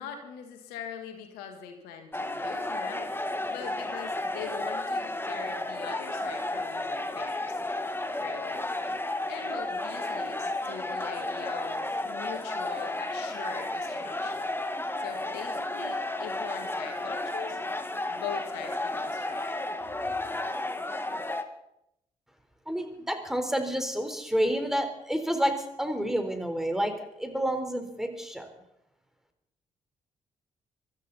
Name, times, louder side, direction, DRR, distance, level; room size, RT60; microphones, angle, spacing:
voice 1, 0.0-3.1 3.5-7.8 8.1-8.6 9.3-14.5 15.0-17.6 18.1-19.6, left 7 dB, 75° left, 5 dB, 1.8 m, -42 dB
sound 1, 2.1-21.4, left 2 dB, 15° left, 1.7 m, -33 dB
voice 2, 22.7-28.5, equal, ahead, 5 dB, 4.0 m, -29 dB
24.5 x 13.5 x 4.2 m, 0.81 s
hypercardioid pair, 40°, 16 cm